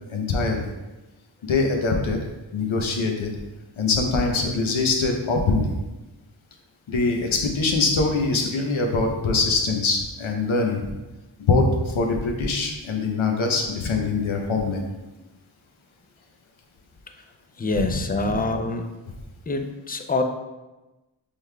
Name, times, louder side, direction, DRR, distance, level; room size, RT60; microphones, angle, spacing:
voice 1, 0.1-0.7 1.5-2.2 2.5-3.3 3.8-5.7 6.9-10.9 11.5-14.8 17.8-17.9 18.2-18.4, left 3 dB, 85° left, 2 dB, 0.7 m, -23 dB
voice 2, 17.6-18.9 19.5-20.2, left 2 dB, 20° left, 5 dB, 0.4 m, -25 dB
5.4 x 3.2 x 2.2 m, 1.1 s
wide cardioid pair, 55°, 47 cm